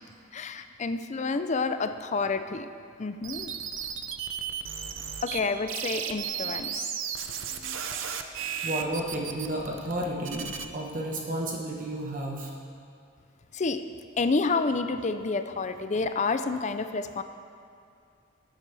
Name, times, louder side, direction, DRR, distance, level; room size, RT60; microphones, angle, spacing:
voice 1, 0.3-2.7 3.0-3.5 5.2-6.9 7.6-7.8 13.5-13.8 14.2-17.2, left 4 dB, 35° left, 10 dB, 0.5 m, -29 dB
sound 1, 3.2-5.4 5.7-10.7, right 8 dB, 80° right, 0.7 m, -34 dB
voice 2, 6.3-6.6 7.8-12.5, right 1 dB, 45° right, -2 dB, 1.2 m, -33 dB
19.5 x 8.4 x 3.4 m, 2.3 s
head